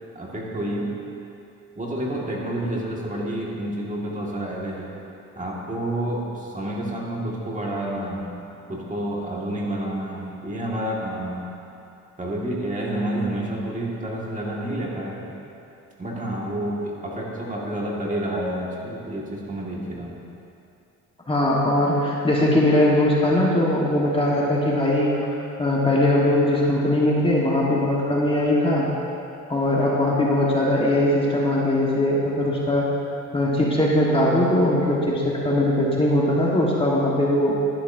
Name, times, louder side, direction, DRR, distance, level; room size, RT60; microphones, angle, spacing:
voice 1, 0.1-1.0 1.8-4.9 5.4-8.4 8.7-11.5 12.2-15.3 16.0-20.2, right 1 dB, 25° right, -4 dB, 1.9 m, -29 dB
voice 2, 21.3-28.9 29.5-32.9 33.3-37.5, left 1 dB, 20° left, -5 dB, 1.5 m, -20 dB
11.5 x 11.0 x 2.7 m, 2.7 s
cardioid pair, 90°, 30 cm